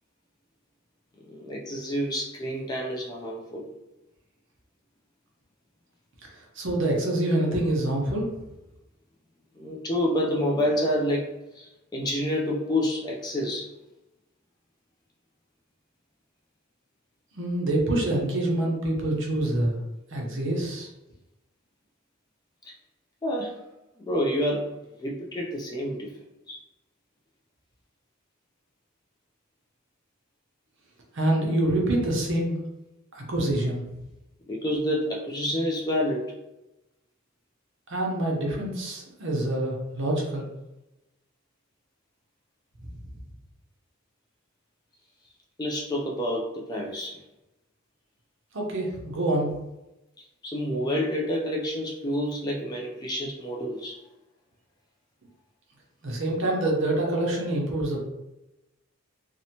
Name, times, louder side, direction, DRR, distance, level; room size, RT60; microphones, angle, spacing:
voice 1, 1.2-3.7 9.6-13.7 22.7-22.8 23.2-23.6 24.0-26.1 26.5-26.6 34.5-36.3 45.6-47.2 50.4-54.0, equal, 20° left, -2 dB, 0.3 m, -28 dB
voice 2, 6.6-8.3 17.4-19.8 20.1-20.9 31.1-32.6 33.2-33.8 37.9-40.5 48.5-49.5 56.0-58.0, right 1 dB, 60° right, -2 dB, 0.7 m, -26 dB
2.7 x 2.1 x 2.8 m, 0.95 s
head